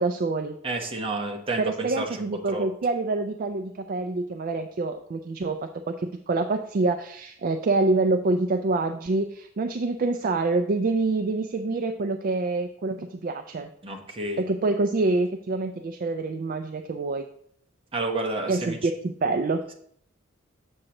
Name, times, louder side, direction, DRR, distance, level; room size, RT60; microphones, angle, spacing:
voice 1, 0.0-0.6 1.6-13.7 14.4-17.3 18.5-19.7, right 3 dB, 45° right, 7 dB, 0.4 m, -26 dB
voice 2, 0.6-2.1 2.5-2.7 13.8-14.4 17.9-18.8, right 2 dB, 25° right, 1 dB, 1.1 m, -30 dB
7.6 x 6.3 x 2.9 m, 0.67 s
head